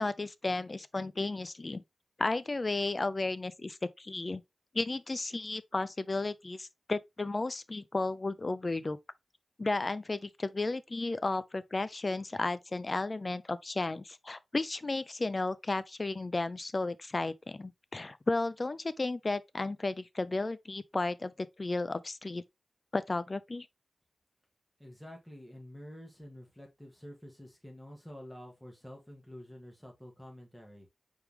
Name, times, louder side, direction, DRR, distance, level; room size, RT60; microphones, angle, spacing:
voice 1, 0.0-1.8 2.2-4.4 4.7-9.0 9.6-22.4 22.9-23.7, left 2 dB, 35° left, 0.4 m, -33 dB
voice 2, 24.8-30.9, left 1 dB, 10° left, 1.7 m, -49 dB
4.7 x 3.6 x 2.9 m
wide cardioid pair, 80°, 0 cm